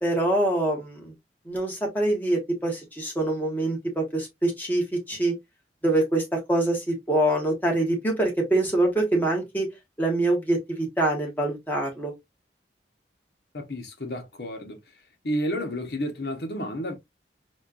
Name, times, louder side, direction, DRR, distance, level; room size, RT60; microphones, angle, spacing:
voice 1, 0.0-1.1 1.4-5.3 5.8-9.7 10.0-12.1, right 1 dB, 10° left, 1.1 m, -25 dB
voice 2, 13.5-14.8 15.2-16.9, equal, 65° left, 0.9 m, -31 dB
4.2 x 2.3 x 2.4 m
head